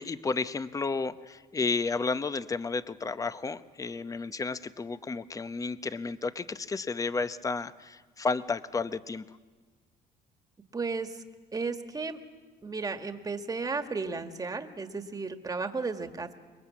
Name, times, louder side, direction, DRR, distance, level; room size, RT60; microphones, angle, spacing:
voice 1, 0.0-9.2, left 4 dB, 20° left, 13 dB, 0.8 m, -32 dB
voice 2, 10.7-11.2 11.5-12.2 12.6-16.3, right 4 dB, 20° right, 7 dB, 1.7 m, -34 dB
26.0 x 22.0 x 8.5 m, 1.4 s
cardioid pair, 110°, 17 cm